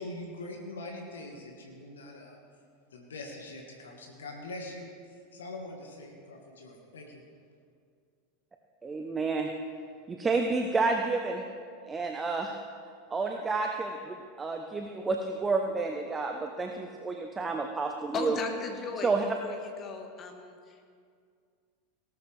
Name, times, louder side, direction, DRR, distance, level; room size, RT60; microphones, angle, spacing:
voice 1, 0.0-2.4 2.9-7.2, left 2 dB, 70° left, 1 dB, 1.7 m, -43 dB
voice 2, 8.8-9.5 10.1-11.4 11.9-12.5 13.1-18.4 19.0-19.2, right 3 dB, 20° right, 3 dB, 0.8 m, -30 dB
voice 3, 18.1-20.8, left 4 dB, 35° left, 4 dB, 1.6 m, -37 dB
18.0 x 12.5 x 3.4 m, 2.2 s
figure-of-eight pair, 85°, 0 cm